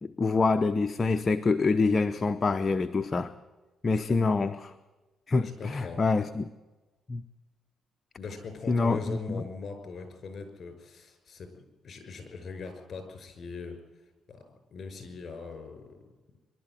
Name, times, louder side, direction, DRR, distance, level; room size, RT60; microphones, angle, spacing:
voice 1, 0.0-3.3 3.8-4.7 5.3-6.5 7.1-7.2 8.7-9.4, left 3 dB, 30° left, 9 dB, 0.8 m, -26 dB
voice 2, 5.4-6.0 8.2-13.8 14.3-16.0, left 4 dB, 50° left, 8 dB, 5.8 m, -41 dB
24.0 x 12.0 x 9.3 m, 1.2 s
cardioid pair, 90°, 0 cm